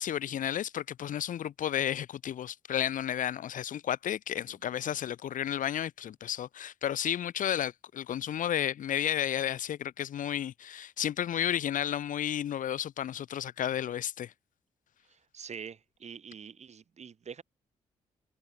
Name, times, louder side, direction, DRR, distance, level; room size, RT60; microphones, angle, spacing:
voice 1, 0.0-14.3, left 10 dB, 70° left, 1.4 m, -32 dB
voice 2, 4.5-5.1 15.0-17.4, right 6 dB, 50° right, 2.8 m, -46 dB
supercardioid pair, 60°, 14 cm